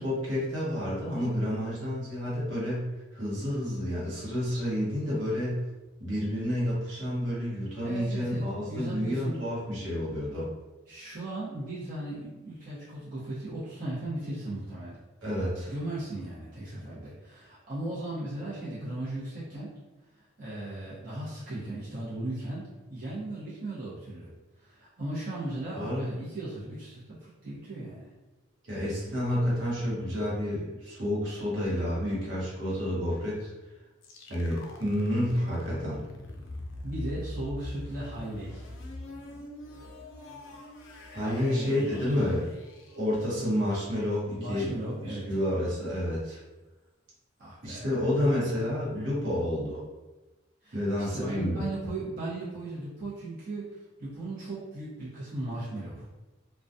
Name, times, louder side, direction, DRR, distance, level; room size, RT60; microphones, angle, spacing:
voice 1, 0.0-5.7 6.0-10.5 15.2-15.7 25.7-26.1 28.6-33.5 34.3-36.0 41.1-42.5 42.9-44.7 45.0-46.4 47.6-49.8 50.7-51.7, left 1 dB, 70° right, -7 dB, 1.0 m, -30 dB
voice 2, 7.8-9.4 10.9-15.0 15.7-19.7 20.2-24.3 24.6-28.1 36.8-38.6 41.2-42.2 44.4-45.2 47.4-47.9 50.6-56.1, right 1 dB, 45° right, -10 dB, 0.8 m, -37 dB
sound 1, 34.0-43.9, left 1 dB, 85° left, 0.4 m, -43 dB
2.3 x 2.2 x 2.6 m, 1.1 s
head